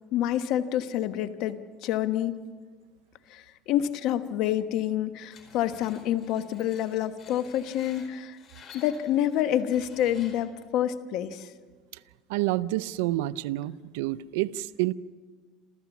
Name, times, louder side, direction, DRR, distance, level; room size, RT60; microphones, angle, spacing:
voice 1, 0.1-2.4 3.3-8.4 8.7-11.5, left 11 dB, 65° left, 10 dB, 1.2 m, -28 dB
Screech, 5.3-10.6, left 5 dB, 45° left, 4.6 m, -52 dB
voice 2, 12.3-14.9, right 16 dB, 90° right, 16 dB, 0.5 m, -28 dB
27.5 x 14.5 x 7.2 m, 1.5 s
supercardioid pair, 120°, 0 cm